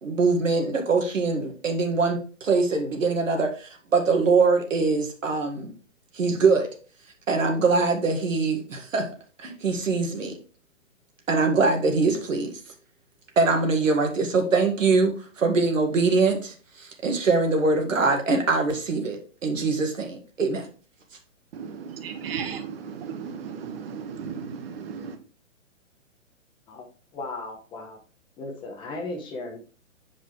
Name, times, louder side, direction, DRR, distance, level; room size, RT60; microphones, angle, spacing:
voice 1, 0.0-5.7 6.1-6.7 7.3-9.1 9.4-10.4 11.3-12.6 13.4-20.7, right 4 dB, 80° right, 3 dB, 1.9 m, -23 dB
voice 2, 21.5-25.2, right 6 dB, 50° right, 8 dB, 1.1 m, -35 dB
voice 3, 27.1-28.0 28.4-29.6, left 2 dB, 15° left, 2 dB, 0.7 m, -36 dB
6.2 x 5.0 x 3.6 m, 0.37 s
hypercardioid pair, 135°, 38 cm